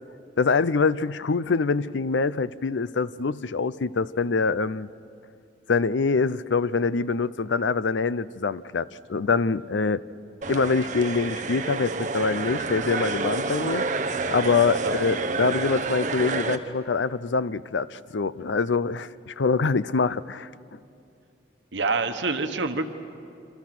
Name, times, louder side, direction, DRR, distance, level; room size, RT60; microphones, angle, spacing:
voice 1, 0.4-4.9 5.7-10.0 10.5-13.9 14.3-20.5, left 4 dB, 85° left, 17 dB, 0.6 m, -25 dB
sound 1, 10.4-16.6, right 3 dB, 40° right, 1.1 m, -29 dB
voice 2, 21.7-22.9, right 3 dB, 80° right, 6 dB, 1.4 m, -26 dB
28.0 x 26.0 x 6.1 m, 2.6 s
head